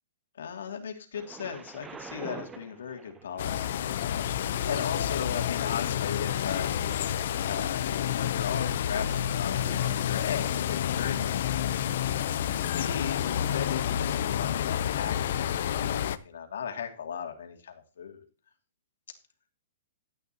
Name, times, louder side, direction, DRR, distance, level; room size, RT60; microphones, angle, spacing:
voice 1, 0.4-6.7 7.1-12.0 12.7-18.2, left 7 dB, 90° left, 3 dB, 2.5 m, -37 dB
Thunder, 1.1-13.0 13.7-13.8, right 4 dB, 10° right, 0.6 m, -50 dB
sound 1, 3.4-16.2, left 10 dB, 60° left, 0.6 m, -29 dB
13.5 x 8.9 x 2.9 m, 0.34 s
hypercardioid pair, 160°, 0 cm